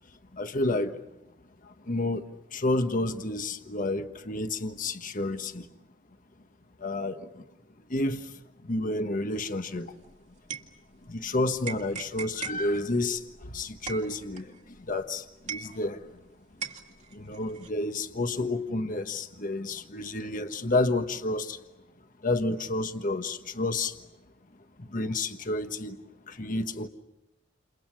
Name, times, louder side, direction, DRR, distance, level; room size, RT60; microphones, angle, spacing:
voice 1, 0.3-1.1 1.6-2.2 2.5-5.7 6.8-7.5 7.9-10.0 11.0-16.2 16.6-16.7 17.1-21.6 22.2-24.0 24.8-26.0 26.2-26.9, left 2 dB, 45° left, 8 dB, 1.4 m, -30 dB
sound 1, 9.8-11.3 11.6-16.2 16.6-17.7, right 6 dB, 40° right, 2.2 m, -40 dB
29.5 x 29.0 x 6.3 m, 0.93 s
head